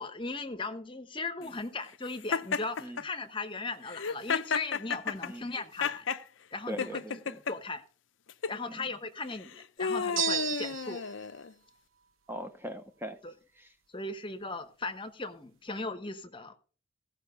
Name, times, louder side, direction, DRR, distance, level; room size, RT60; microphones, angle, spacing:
voice 1, 0.0-6.0 6.5-7.0 7.5-7.8 8.5-11.0 13.2-13.3 13.9-16.6, left 3 dB, 25° left, 1.0 m, -38 dB
Laughter, 2.3-3.0 3.9-6.2 6.8-7.5 8.3-8.6 9.3-11.5, left 5 dB, 65° left, 0.6 m, -32 dB
voice 2, 6.7-7.4 8.7-8.9 12.3-13.2 13.6-13.7, equal, 10° right, 0.8 m, -40 dB
sound 1, 10.2-11.1, right 9 dB, 75° right, 0.9 m, -32 dB
16.0 x 5.7 x 6.7 m
head